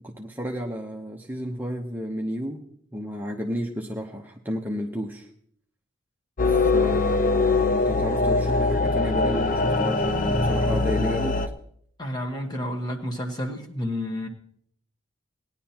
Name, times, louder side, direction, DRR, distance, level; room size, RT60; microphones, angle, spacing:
voice 1, 0.0-2.6 2.9-5.3 6.5-11.4, equal, 10° right, 0 dB, 0.7 m, -31 dB
sound 1, 6.4-11.5, left 3 dB, 40° left, 0.6 m, -22 dB
voice 2, 12.0-14.3, left 1 dB, 20° left, 2 dB, 1.3 m, -30 dB
19.0 x 10.5 x 2.9 m, 0.65 s
head